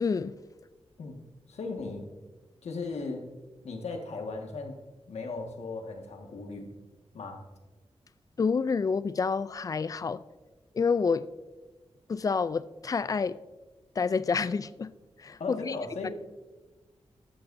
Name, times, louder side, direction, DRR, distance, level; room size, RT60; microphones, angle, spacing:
voice 1, 0.0-0.3 8.4-10.2 10.7-11.3 12.1-13.4 14.0-14.9 15.2-15.8 16.0-16.1, left 5 dB, 35° left, 0.3 m, -28 dB
voice 2, 1.5-2.1 2.6-3.3 3.6-4.8 5.1-6.7 7.1-7.4 15.4-16.1, left 3 dB, 90° left, 1.7 m, -37 dB
14.0 x 12.0 x 2.7 m
wide cardioid pair, 180°, 11 cm